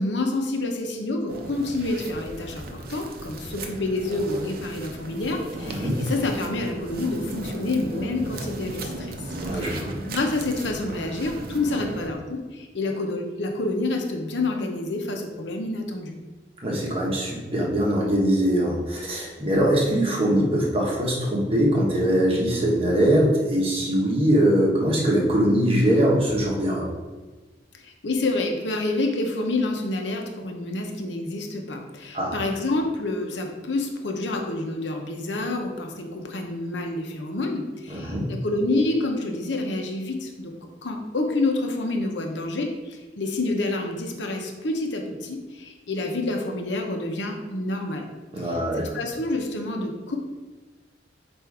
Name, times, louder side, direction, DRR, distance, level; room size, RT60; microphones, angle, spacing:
voice 1, 0.0-9.2 9.5-16.2 27.7-40.5 40.8-48.1 48.4-50.2, left 2 dB, 80° left, 2 dB, 0.9 m, -28 dB
sound 1, 1.3-12.1, right 2 dB, 55° right, 0.7 m, -36 dB
voice 2, 5.6-6.0 9.4-9.9 16.6-26.9 32.1-32.4 37.9-38.3 48.3-48.9, equal, 35° right, -3 dB, 1.3 m, -22 dB
7.7 x 2.7 x 4.8 m, 1.2 s
head